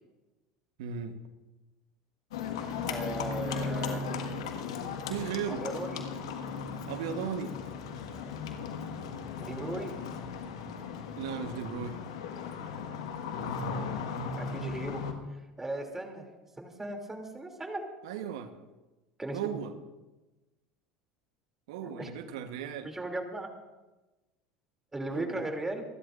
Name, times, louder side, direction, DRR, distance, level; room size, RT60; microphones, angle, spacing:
voice 1, 0.8-1.2 5.1-5.6 6.9-7.6 11.2-12.0 18.0-18.5 19.3-19.7 21.7-22.9 25.1-25.5, right 8 dB, 80° right, 8 dB, 1.2 m, -36 dB
Livestock farm animals working animals, 2.3-15.1, left 5 dB, 85° left, 1.6 m, -36 dB
voice 2, 2.9-4.1 5.5-6.0 9.4-10.0 14.4-15.0 15.6-16.3 16.6-17.9 19.2-19.6 21.8-22.1 22.8-23.5 24.9-25.8, right 2 dB, 15° right, 3 dB, 2.8 m, -37 dB
27.5 x 12.5 x 2.6 m, 1.1 s
hypercardioid pair, 90°, 3 cm